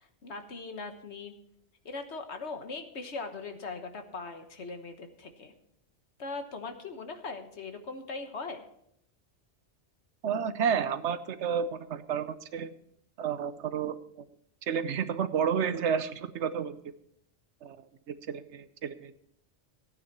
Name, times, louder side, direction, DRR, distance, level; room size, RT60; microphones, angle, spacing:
voice 1, 0.2-1.3 1.8-5.5 6.2-8.6, left 3 dB, 70° left, 7 dB, 1.5 m, -40 dB
voice 2, 10.2-12.7 13.2-14.0 14.6-16.8 17.6-17.8 18.1-19.1, right 7 dB, 80° right, 12 dB, 1.1 m, -31 dB
15.0 x 9.5 x 4.7 m, 0.72 s
omnidirectional pair, 1.2 m